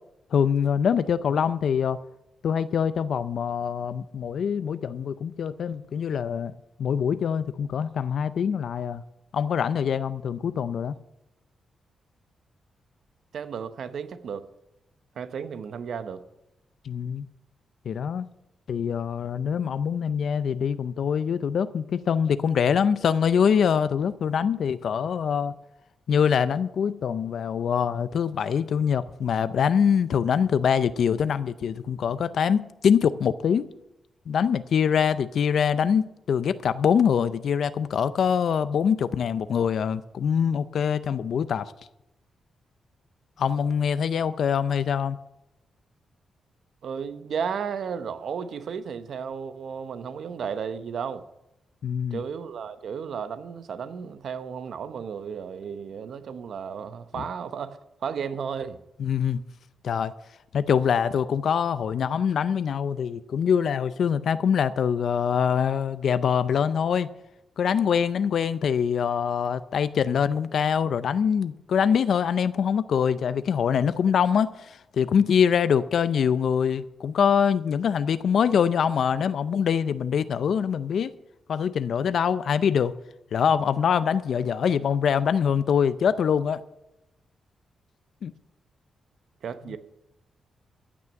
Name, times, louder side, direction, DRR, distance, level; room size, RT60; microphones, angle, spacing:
voice 1, 0.3-2.0 2.4-6.5 6.8-9.0 9.3-11.0 16.8-17.3 17.9-18.3 18.7-25.6 26.1-33.7 34.3-41.7 43.4-45.2 51.8-52.2 59.0-59.4 59.8-60.1 60.5-67.1 67.6-81.1 81.5-82.9 83.3-86.6 88.2-88.3, left 7 dB, 65° left, 0.5 m, -24 dB
voice 2, 13.3-14.5 15.2-16.2 46.8-51.3 52.1-58.8 89.4-89.8, right 7 dB, 65° right, 0.9 m, -34 dB
15.0 x 6.1 x 7.6 m
cardioid pair, 110°, 0 cm